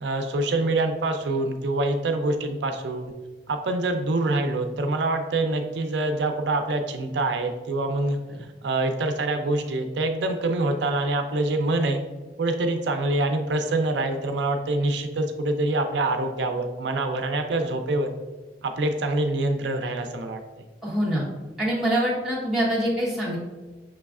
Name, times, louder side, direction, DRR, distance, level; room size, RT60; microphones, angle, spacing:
voice 1, 0.0-3.1 3.5-8.2 8.6-12.0 12.4-18.1 18.6-20.4, right 2 dB, 85° right, 5 dB, 0.4 m, -25 dB
voice 2, 20.8-21.3 21.6-23.4, equal, ahead, -8 dB, 1.1 m, -24 dB
6.1 x 3.1 x 2.4 m, 1.3 s
head